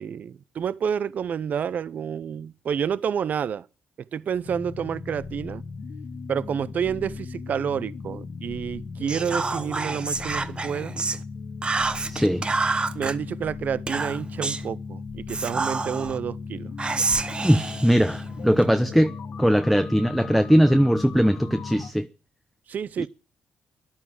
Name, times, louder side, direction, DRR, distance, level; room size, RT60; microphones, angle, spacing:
voice 1, 0.0-3.7 4.1-5.6 6.3-10.9 12.9-16.7 22.7-23.1, right 7 dB, 55° right, 0.7 m, -29 dB
sound 1, 4.4-21.9, left 4 dB, 65° left, 1.7 m, -37 dB
Whispering, 9.1-11.2 11.6-13.1 13.9-14.7 15.3-16.2 16.8-18.7, right 3 dB, 30° right, 1.1 m, -28 dB
voice 2, 12.1-12.4 17.4-19.1 19.4-22.1 23.0-23.1, equal, ahead, 0.8 m, -20 dB
13.0 x 11.5 x 7.5 m
supercardioid pair, 65°, 3 cm